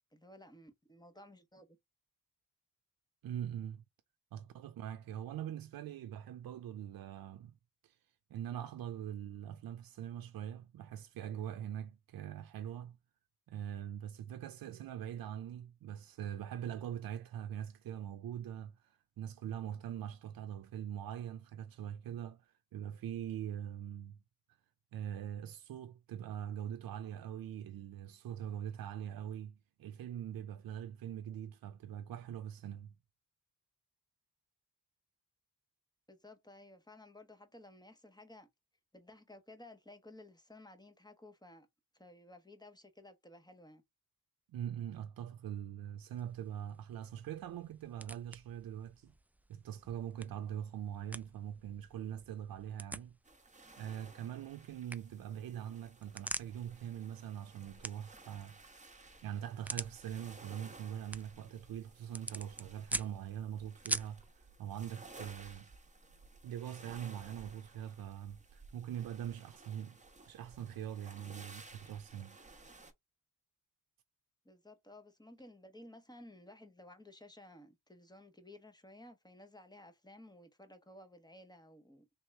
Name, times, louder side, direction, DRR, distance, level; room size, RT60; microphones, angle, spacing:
voice 1, 0.1-1.8 36.1-38.5 38.9-41.7 41.9-43.8 74.4-82.1, left 1 dB, 10° left, 1.1 m, -56 dB
voice 2, 3.2-3.8 4.3-7.6 7.8-8.0 8.3-13.0 13.5-24.2 24.9-32.9 44.5-49.1 49.5-53.2 53.8-58.6 59.2-65.7 66.4-72.4, right 10 dB, 85° right, 0.5 m, -43 dB
sound 1, 46.1-64.3, right 1 dB, 5° right, 0.3 m, -47 dB
sound 2, 53.2-72.9, right 3 dB, 20° right, 1.1 m, -57 dB
3.5 x 3.0 x 3.4 m
cardioid pair, 60°, 34 cm